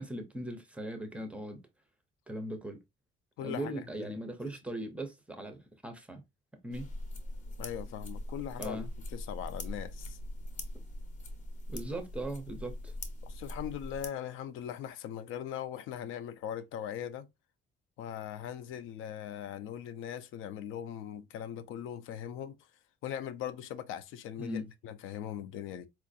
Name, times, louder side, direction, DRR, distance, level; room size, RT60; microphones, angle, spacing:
voice 1, 0.0-1.6 2.3-2.8 3.4-6.2 6.6-6.9 8.6-8.9 11.7-12.9 24.4-24.6, right 1 dB, 5° right, 0.5 m, -39 dB
voice 2, 3.4-3.7 4.0-4.2 7.6-10.2 13.2-17.3 18.0-22.6 23.0-25.9, left 9 dB, 75° left, 0.5 m, -40 dB
sound 1, 6.7-14.1, left 1 dB, 35° left, 0.7 m, -41 dB
4.5 x 2.5 x 2.5 m
cardioid pair, 180°, 21 cm